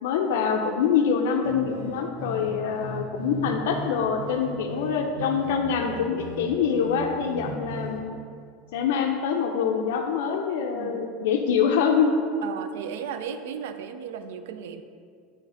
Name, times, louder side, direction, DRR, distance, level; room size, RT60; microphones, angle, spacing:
voice 1, 0.0-8.2 8.7-12.1, left 6 dB, 90° left, 3 dB, 0.4 m, -25 dB
sound 1, 1.4-8.0, right 1 dB, 55° right, 1.4 m, -37 dB
voice 2, 10.7-11.2 12.4-14.8, right 7 dB, 85° right, 10 dB, 0.4 m, -35 dB
6.3 x 3.3 x 4.9 m, 2.2 s
supercardioid pair, 170°, 0 cm